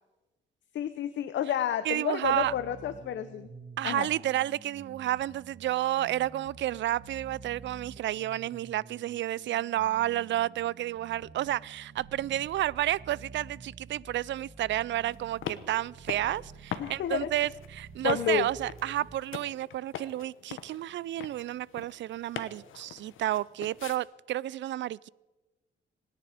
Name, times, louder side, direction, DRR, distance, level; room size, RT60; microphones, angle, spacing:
voice 1, 0.7-3.5 3.8-4.1 16.8-17.3 18.0-18.5, left 10 dB, 65° left, 0.7 m, -30 dB
voice 2, 1.8-2.5 3.8-25.1, right 13 dB, 65° right, 0.4 m, -31 dB
sound 1, 2.2-19.2, right 4 dB, 50° right, 1.9 m, -50 dB
sound 2, 15.0-24.0, left 9 dB, 85° left, 1.1 m, -43 dB
26.5 x 10.5 x 5.0 m
cardioid pair, 100°, 20 cm